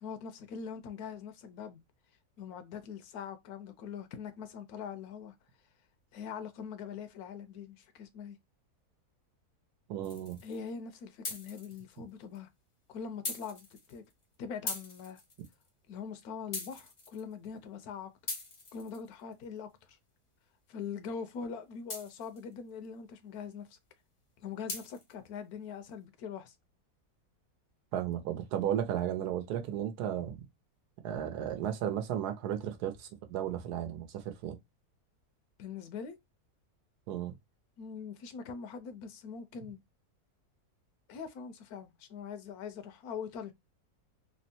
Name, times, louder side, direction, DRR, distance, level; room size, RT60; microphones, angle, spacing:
voice 1, 0.0-1.8 2.4-5.3 6.1-8.4 10.4-12.5 12.9-14.0 14.4-15.2 15.9-18.1 18.7-20.0 20.7-23.8 24.4-26.5 35.6-36.2 37.8-39.8 41.1-43.5, left 6 dB, 75° left, 1.1 m, -42 dB
voice 2, 9.9-10.4 27.9-30.4 31.0-34.6 37.1-37.3, right 10 dB, 90° right, 1.2 m, -34 dB
sound 1, 10.0-10.7 11.2-12.0 12.4-12.5 13.3-14.2 14.7-15.7 16.5-17.5 18.3-19.4 21.9-22.5 24.7-25.1, left 3 dB, 40° left, 0.6 m, -41 dB
3.4 x 2.0 x 2.6 m
omnidirectional pair, 1.6 m